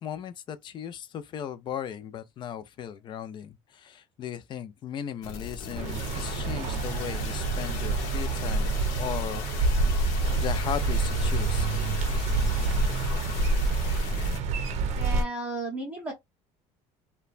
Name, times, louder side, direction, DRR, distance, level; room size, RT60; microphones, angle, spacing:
voice 1, 0.0-9.5 10.4-11.7, left 9 dB, 40° left, 0.4 m, -37 dB
sound 1, 5.2-14.4, left 7 dB, 80° left, 0.8 m, -39 dB
sound 2, 5.8-15.2, right 3 dB, 60° right, 0.6 m, -27 dB
voice 2, 14.9-16.1, right 2 dB, 10° right, 0.8 m, -34 dB
2.9 x 2.2 x 2.4 m
cardioid pair, 145°, 13 cm